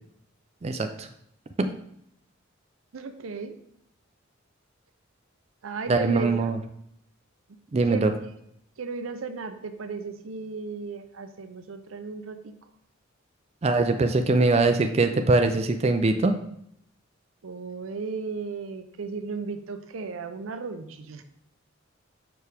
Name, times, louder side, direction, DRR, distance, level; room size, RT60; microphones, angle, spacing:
voice 1, 0.6-1.1 1.6-1.7 5.9-6.6 7.7-8.1 13.6-16.3, right 3 dB, 30° right, 6 dB, 0.4 m, -22 dB
voice 2, 2.9-3.6 5.6-6.6 7.9-8.1 8.8-12.5 17.4-21.2, right 4 dB, 85° right, 9 dB, 0.6 m, -35 dB
6.0 x 4.6 x 3.4 m, 0.74 s
head